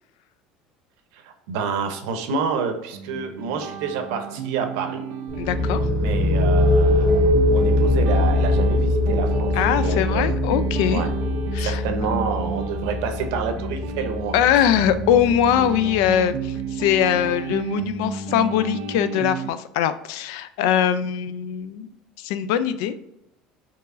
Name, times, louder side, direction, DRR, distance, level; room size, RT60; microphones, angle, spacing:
voice 1, 1.1-5.0 6.0-7.2 7.5-9.5 9.8-10.3 10.9-11.1 11.6-14.3, right 5 dB, 80° right, 6 dB, 0.7 m, -28 dB
sound 1, 2.9-19.5, right 7 dB, 55° right, 0.4 m, -32 dB
voice 2, 5.3-5.9 9.5-11.0 11.5-11.8 14.3-21.9 22.2-23.1, left 9 dB, 85° left, 12 dB, 0.3 m, -22 dB
sound 2, 5.3-16.8, left 2 dB, 35° left, 0.7 m, -22 dB
4.5 x 3.0 x 2.5 m, 0.82 s
cardioid pair, 180°, 2 cm